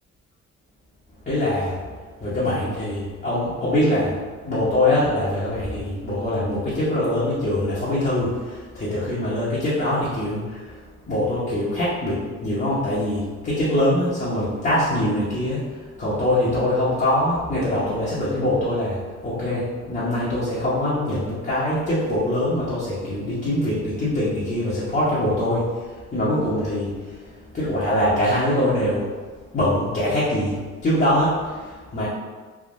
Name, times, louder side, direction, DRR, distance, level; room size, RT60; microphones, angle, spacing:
voice 1, 1.3-4.2 4.4-29.1 29.5-32.1, left 1 dB, 30° left, -11 dB, 1.0 m, -23 dB
3.5 x 2.4 x 2.6 m, 1.4 s
cardioid pair, 90°, 30 cm